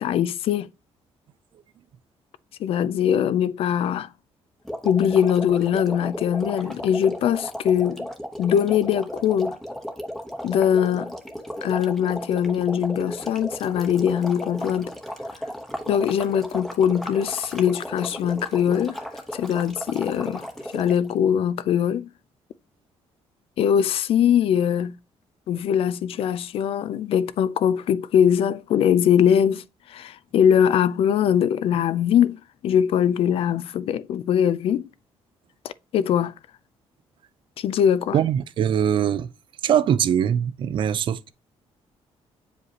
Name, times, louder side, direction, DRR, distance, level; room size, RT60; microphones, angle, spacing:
voice 1, 0.0-0.7 2.6-4.1 4.8-8.1 8.4-9.6 10.4-11.1 11.6-14.9 15.9-19.0 19.3-20.5 20.7-22.1 23.6-25.0 25.5-34.9 35.6-36.3 37.6-38.2, left 9 dB, 55° left, 0.4 m, -22 dB
sound 1, 4.6-21.1, equal, 5° left, 0.9 m, -35 dB
voice 2, 38.1-39.3 39.6-41.3, right 9 dB, 50° right, 0.5 m, -22 dB
8.0 x 5.0 x 2.8 m
cardioid pair, 180°, 11 cm